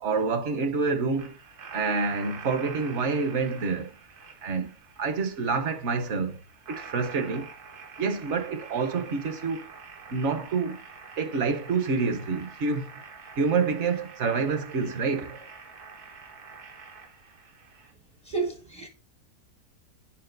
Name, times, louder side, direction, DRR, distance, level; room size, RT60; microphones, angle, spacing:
voice 1, 0.0-1.4 1.7-3.9 4.4-4.7 5.0-6.4 6.7-7.5 8.0-9.6 10.1-10.8 11.2-12.9 13.4-15.5, right 4 dB, 60° right, 0.9 m, -27 dB
sound 1, 1.2-17.9, right 5 dB, 85° right, 1.7 m, -46 dB
voice 2, 18.3-18.9, right 4 dB, 40° right, 0.5 m, -31 dB
8.7 x 4.7 x 2.5 m
omnidirectional pair, 1.6 m